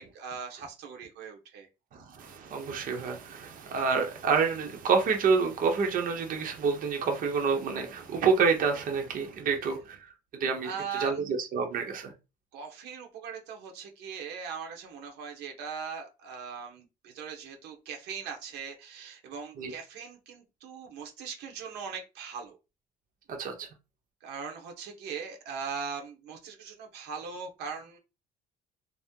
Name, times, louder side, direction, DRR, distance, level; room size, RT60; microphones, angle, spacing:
voice 1, 0.0-1.7 10.6-11.2 12.5-22.6 24.2-28.0, right 6 dB, 85° right, 0.8 m, -40 dB
voice 2, 2.2-10.0 10.4-10.7 11.0-12.1 19.6-19.7 23.4-23.7, right 5 dB, 55° right, 0.7 m, -28 dB
2.8 x 2.0 x 3.5 m
cardioid pair, 110°, 17 cm